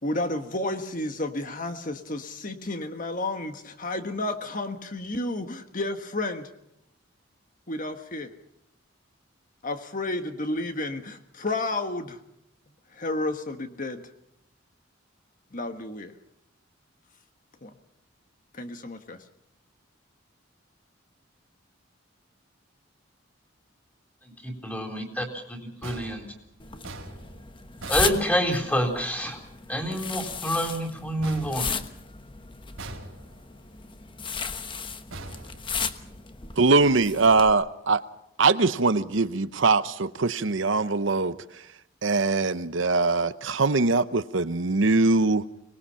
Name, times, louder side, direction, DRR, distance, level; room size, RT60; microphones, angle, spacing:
voice 1, 0.0-6.5 7.7-8.3 9.6-12.2 12.9-14.1 15.5-16.1 17.6-17.7 18.5-19.3, left 2 dB, 40° left, 1.4 m, -31 dB
voice 2, 24.2-26.3 27.9-29.4 29.7-31.8, equal, 10° left, 3.8 m, -28 dB
sound 1, 25.8-28.9 31.2-32.3 32.8-33.6 35.1-36.2, right 2 dB, 85° right, 4.2 m, -43 dB
sound 2, 26.6-37.5, left 5 dB, 25° left, 1.2 m, -35 dB
voice 3, 36.6-38.0 38.4-41.3 42.0-45.4, right 3 dB, 70° right, 0.9 m, -22 dB
24.5 x 20.0 x 5.7 m
head